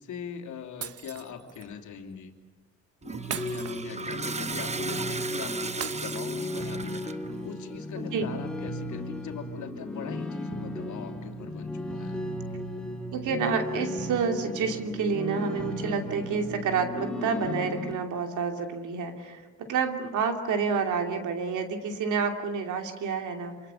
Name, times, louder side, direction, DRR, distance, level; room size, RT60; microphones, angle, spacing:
voice 1, 0.0-2.3 3.0-12.2, left 7 dB, 75° left, 4 dB, 2.9 m, -41 dB
Shatter, 0.8-1.7 3.3-4.4 5.8-6.8, right 9 dB, 50° right, 1.0 m, -39 dB
Toilet flush, 3.0-7.3, right 4 dB, 20° right, 0.9 m, -36 dB
sound 1, 3.1-17.9, left 1 dB, 5° left, 2.8 m, -35 dB
voice 2, 13.1-23.6, right 5 dB, 80° right, 5 dB, 2.9 m, -29 dB
26.5 x 25.0 x 7.1 m, 1.3 s
cardioid pair, 90°, 30 cm